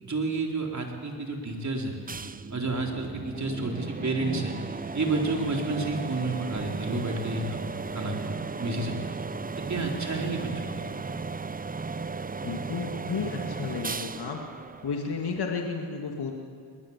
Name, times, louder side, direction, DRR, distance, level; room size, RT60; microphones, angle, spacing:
voice 1, 0.0-2.0 2.5-4.6 4.9-7.7 7.9-8.3 8.6-9.2 9.6-10.9, right 2 dB, 40° right, 1 dB, 4.2 m, -30 dB
sound 1, 2.1-15.6, right 4 dB, 20° right, 0.6 m, -35 dB
voice 2, 12.4-14.4 14.8-16.3, left 5 dB, 60° left, 1 dB, 2.2 m, -32 dB
21.0 x 19.5 x 7.4 m, 2.3 s
cardioid pair, 60°, 44 cm